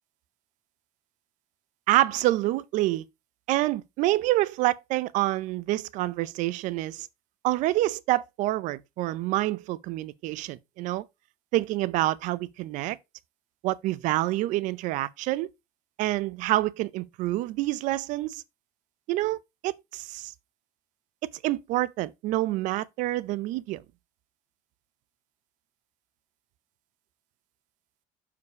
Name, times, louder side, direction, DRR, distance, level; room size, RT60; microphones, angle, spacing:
voice 1, 1.9-3.0 3.5-7.1 7.4-11.1 11.5-13.0 13.6-15.5 16.0-18.4 19.1-20.3 21.2-23.8, right 17 dB, 65° right, 0.5 m, -27 dB
6.9 x 4.8 x 4.7 m
cardioid pair, 155°, 14 cm